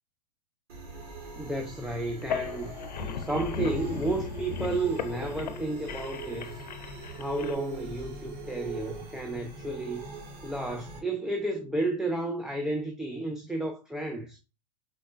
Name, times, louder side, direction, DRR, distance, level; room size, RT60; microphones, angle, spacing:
sound 1, 0.7-11.0, right 3 dB, 60° right, 1.8 m, -41 dB
voice 1, 1.4-6.6 7.2-10.1 10.4-14.4, right 2 dB, 5° right, 0.5 m, -32 dB
sound 2, 2.1-7.5, left 6 dB, 85° left, 0.7 m, -37 dB
4.4 x 4.0 x 2.5 m
hypercardioid pair, 120°, 21 cm